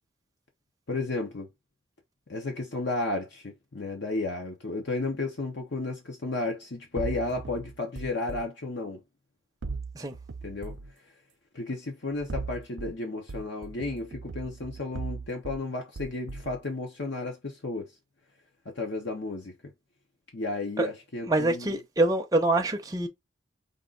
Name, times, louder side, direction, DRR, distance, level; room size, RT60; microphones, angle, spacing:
voice 1, 0.9-1.5 2.3-9.0 10.4-10.8 11.5-17.9 18.6-19.5 20.3-21.8, left 2 dB, 65° left, 1.0 m, -33 dB
sound 1, 7.0-8.5 9.6-10.9 12.1-13.0 13.3-15.6 16.0-16.6, right 4 dB, 70° right, 0.6 m, -38 dB
voice 2, 21.3-23.1, right 2 dB, 20° right, 0.6 m, -25 dB
5.3 x 2.5 x 3.8 m
head